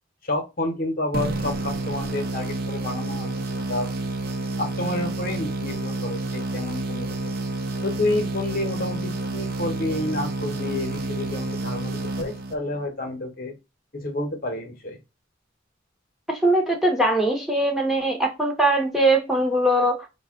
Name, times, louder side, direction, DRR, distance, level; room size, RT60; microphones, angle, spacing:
voice 1, 0.2-3.9 4.6-7.3 7.8-13.5 13.9-15.0, left 2 dB, 45° left, 1.0 m, -29 dB
sound 1, 1.1-12.9, right 2 dB, 50° right, 0.6 m, -29 dB
voice 2, 16.3-20.0, right 1 dB, ahead, 0.8 m, -21 dB
5.3 x 2.3 x 3.6 m
head